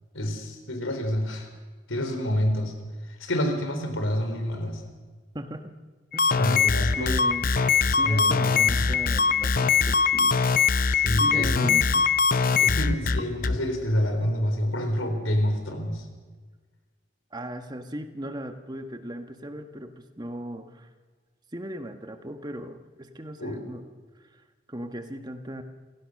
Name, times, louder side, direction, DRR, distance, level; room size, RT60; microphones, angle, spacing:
voice 1, 0.1-1.5 1.9-2.7 3.1-4.8 6.4-7.1 7.8-8.9 10.9-11.7 12.6-16.1 23.4-23.6, equal, 80° left, 6 dB, 4.1 m, -28 dB
voice 2, 5.3-5.7 6.1-6.5 7.0-7.6 8.0-10.4 11.2-12.0 17.3-20.9 21.5-23.8 24.2-24.4 24.7-25.6, right 1 dB, 20° right, 7 dB, 1.4 m, -37 dB
sound 1, 6.1-13.6, left 5 dB, 45° left, 0.7 m, -22 dB
27.5 x 16.5 x 6.6 m, 1.4 s
head